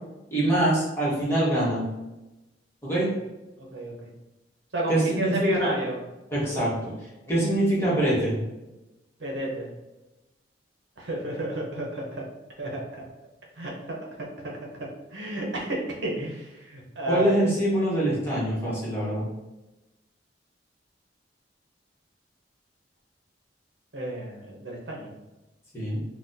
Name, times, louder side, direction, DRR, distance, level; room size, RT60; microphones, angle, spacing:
voice 1, 0.3-1.8 2.8-3.1 4.9-5.7 6.3-6.9 7.3-8.4 17.0-19.3 25.7-26.0, right 1 dB, 15° left, -8 dB, 1.1 m, -24 dB
voice 2, 3.6-4.1 4.7-6.0 9.2-9.7 11.0-12.2 12.6-13.0 13.6-14.0 14.4-14.6 15.1-17.5 23.9-25.1, right 1 dB, 70° right, -2 dB, 0.8 m, -31 dB
4.0 x 2.2 x 2.6 m, 1.0 s
head